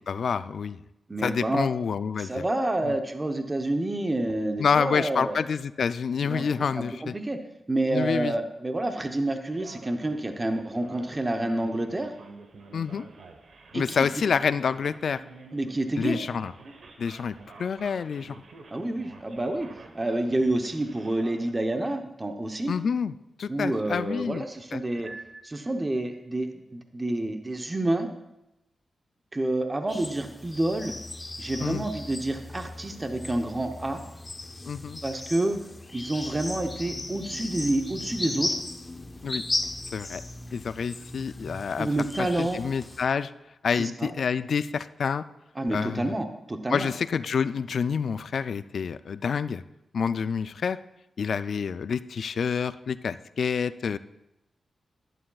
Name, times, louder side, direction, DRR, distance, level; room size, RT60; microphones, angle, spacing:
voice 1, 0.1-0.8 1.2-2.4 2.8-2.9 4.6-7.1 7.9-8.3 12.7-13.1 13.7-15.2 16.0-16.5 17.0-18.4 22.7-24.4 24.7-24.8 31.6-31.8 34.7-35.0 39.2-39.4 39.9-40.2 40.5-41.9 42.2-43.3 43.6-45.2 45.7-46.1 46.7-49.6 49.9-50.8 51.2-54.0, left 6 dB, 70° left, 14 dB, 0.3 m, -28 dB
voice 2, 1.1-1.7 2.2-5.4 6.2-6.4 6.8-7.4 7.7-12.1 13.7-14.1 15.5-16.2 18.7-22.7 23.5-25.1 25.4-28.1 29.3-31.0 31.4-34.0 35.0-35.6 35.9-38.6 41.8-42.6 43.7-44.1 45.6-46.9, right 1 dB, 25° right, 6 dB, 0.8 m, -28 dB
Male speech man speaking, 9.5-21.5, right 3 dB, 75° right, 1.1 m, -49 dB
Piano, 25.0-26.3, right 3 dB, 55° right, 2.8 m, -46 dB
sound 1, 29.9-43.0, left 2 dB, 25° left, 0.7 m, -36 dB
11.0 x 11.0 x 2.3 m, 0.90 s
cardioid pair, 65°, 0 cm